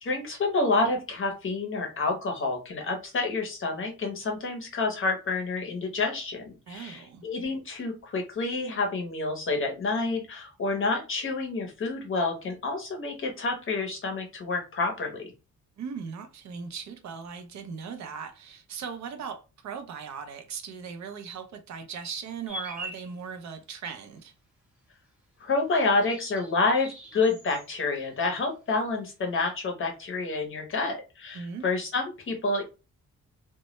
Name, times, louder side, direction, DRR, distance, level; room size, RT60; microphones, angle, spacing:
voice 1, 0.0-15.3 25.4-32.7, left 3 dB, 40° left, 0.6 m, -28 dB
voice 2, 6.7-7.2 15.8-24.3 31.3-31.7, right 6 dB, 65° right, 0.5 m, -38 dB
sound 1, 22.5-23.1 25.9-27.7 28.0-28.6 29.5-29.6, right 1 dB, 5° right, 0.5 m, -42 dB
2.1 x 2.0 x 2.8 m
wide cardioid pair, 170°, 31 cm